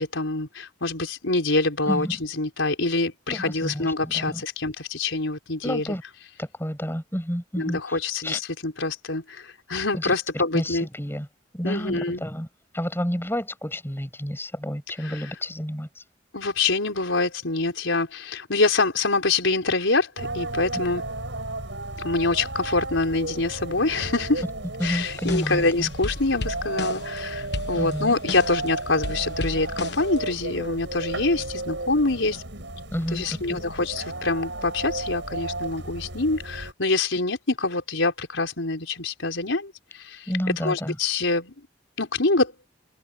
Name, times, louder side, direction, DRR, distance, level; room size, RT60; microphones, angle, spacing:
voice 1, 0.0-6.0 7.6-10.9 11.6-12.2 15.0-15.2 16.3-21.0 22.0-24.4 24.8-32.4 33.1-40.3 40.6-41.5 42.0-42.5, left 3 dB, 90° left, 4.8 m, -25 dB
voice 2, 1.9-2.2 3.3-4.4 5.6-6.0 6.4-8.0 8.2-8.4 9.9-10.1 10.5-11.3 11.5-12.5 12.7-16.0 24.8-25.9 27.7-28.1 32.9-33.2 33.5-33.6 40.3-41.0, equal, 10° left, 7.3 m, -30 dB
sound 1, 20.2-36.7, right 2 dB, 70° right, 7.6 m, -34 dB
sound 2, 24.8-25.7 26.0-27.2 27.5-28.7 29.0-30.2, left 2 dB, 60° left, 1.4 m, -34 dB
head